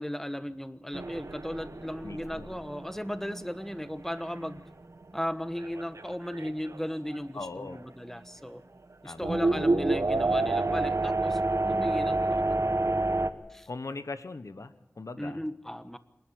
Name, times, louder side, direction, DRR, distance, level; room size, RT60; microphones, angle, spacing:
voice 1, 0.0-4.6 5.1-8.6 9.0-11.4 11.6-12.8 13.5-13.7 15.2-16.0, equal, 5° left, 11 dB, 1.2 m, -36 dB
sound 1, 0.9-4.6 5.0-5.1 5.6-7.2 7.7-7.8 9.2-13.3, right 2 dB, 70° right, 1.2 m, -29 dB
voice 2, 2.0-2.5 7.3-7.8 9.0-9.7 13.7-15.4, left 3 dB, 80° left, 10 dB, 1.2 m, -40 dB
27.0 x 11.0 x 9.3 m, 0.90 s
wide cardioid pair, 45°, 5 cm